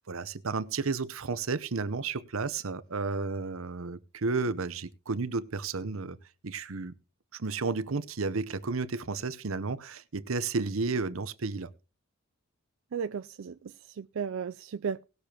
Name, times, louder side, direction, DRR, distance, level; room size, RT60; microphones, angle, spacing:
voice 1, 0.1-6.2 6.4-6.9 7.3-11.7, right 4 dB, 85° right, 0.9 m, -32 dB
voice 2, 12.9-15.0, right 6 dB, 70° right, 0.4 m, -35 dB
19.0 x 6.8 x 2.9 m
head